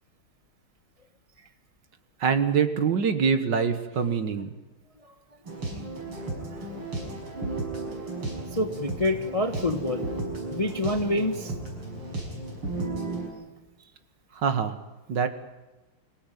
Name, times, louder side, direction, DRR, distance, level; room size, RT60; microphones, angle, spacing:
voice 1, 2.2-4.5 14.3-14.8 15.1-15.3, right 6 dB, 55° right, 10 dB, 1.9 m, -24 dB
sound 1, 5.4-13.3, right 2 dB, 75° right, 6.6 m, -34 dB
voice 2, 8.5-10.1 10.5-11.5, left 1 dB, 20° left, 7 dB, 0.9 m, -27 dB
25.5 x 16.5 x 9.3 m, 1.1 s
omnidirectional pair, 2.4 m